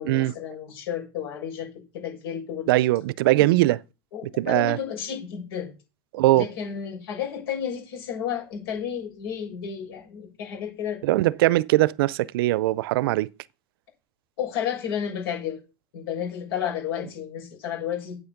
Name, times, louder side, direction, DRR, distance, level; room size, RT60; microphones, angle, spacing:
voice 1, 0.0-1.7 1.9-2.7 3.4-3.5 4.1-5.7 6.3-11.2 14.4-15.6 15.9-18.2, left 8 dB, 85° left, 7.0 m, -32 dB
voice 2, 2.7-3.8 4.4-4.8 6.1-6.5 11.0-13.3, right 17 dB, 75° right, 0.5 m, -21 dB
8.7 x 8.5 x 5.9 m
supercardioid pair, 175°, 12 cm